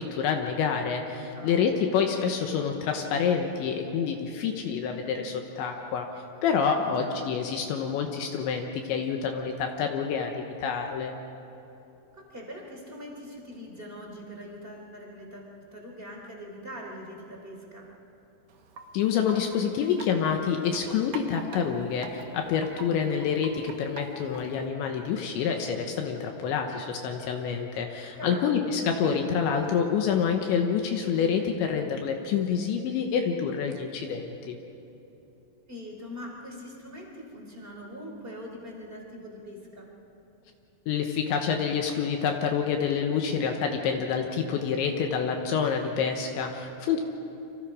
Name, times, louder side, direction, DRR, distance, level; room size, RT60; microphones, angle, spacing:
voice 1, 0.0-6.1 6.4-11.1 18.9-34.6 40.9-47.0, left 6 dB, 75° left, 3 dB, 3.2 m, -27 dB
voice 2, 1.3-1.8 6.8-7.2 12.1-15.4 15.7-17.9 28.2-28.6 35.7-39.9, equal, 15° right, -1 dB, 2.6 m, -42 dB
Wind chime, 18.5-24.7, right 4 dB, 75° right, 1.8 m, -45 dB
30.0 x 25.0 x 5.0 m, 3.0 s
omnidirectional pair, 5.8 m